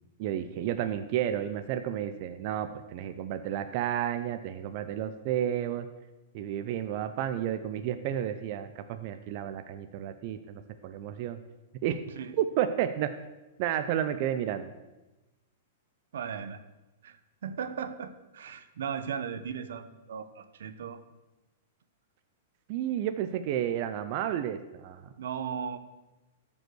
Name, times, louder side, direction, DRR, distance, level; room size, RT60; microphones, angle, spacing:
voice 1, 0.2-5.9 6.3-11.4 11.8-12.0 12.4-13.1 13.6-14.7 22.7-25.1, right 10 dB, 45° right, 9 dB, 0.6 m, -31 dB
voice 2, 16.1-16.6 17.0-21.0 25.2-25.8, right 7 dB, 80° right, 11 dB, 0.9 m, -37 dB
13.0 x 5.4 x 6.2 m, 1.1 s
hypercardioid pair, 155°, 0 cm